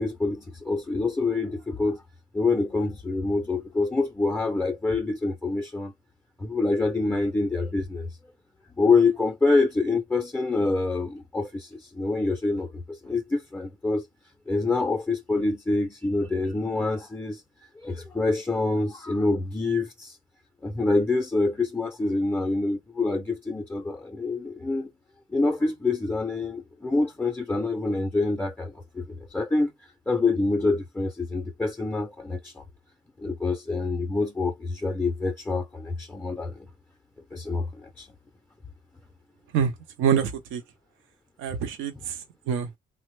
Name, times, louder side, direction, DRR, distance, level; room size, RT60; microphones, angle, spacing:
voice 1, 0.0-2.0 2.3-5.9 6.4-8.1 8.8-14.1 14.5-17.4 17.8-20.2 20.6-24.9 25.3-29.7 30.1-32.6 33.2-36.7 37.3-38.1, left 3 dB, 10° left, 0.4 m, -26 dB
voice 2, 40.0-40.6 41.4-42.8, right 8 dB, 85° right, 0.5 m, -26 dB
3.1 x 2.0 x 3.1 m
cardioid pair, 90°, 20 cm